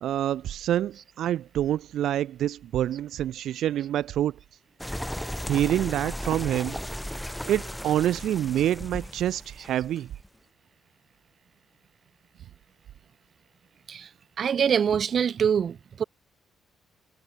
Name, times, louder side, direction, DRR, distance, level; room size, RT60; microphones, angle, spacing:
voice 1, 0.0-4.4 5.5-6.8 7.5-10.1, right 11 dB, 75° right, 2.2 m, -26 dB
sound 1, 4.8-10.3, equal, 5° left, 5.8 m, -35 dB
voice 2, 14.4-16.0, right 7 dB, 55° right, 2.7 m, -24 dB
cardioid pair, 90°, 0 cm